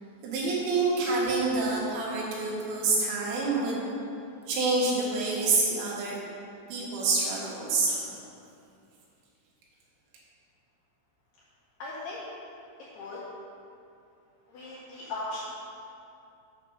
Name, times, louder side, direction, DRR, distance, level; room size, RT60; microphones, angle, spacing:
voice 1, 0.2-3.8 4.5-6.2 6.7-8.2, right 3 dB, 80° right, -4 dB, 4.1 m, -27 dB
voice 2, 11.8-12.3 12.8-13.2 14.5-15.4, left 2 dB, 75° left, -6 dB, 2.4 m, -38 dB
8.3 x 6.8 x 5.5 m, 2.6 s
omnidirectional pair, 5.8 m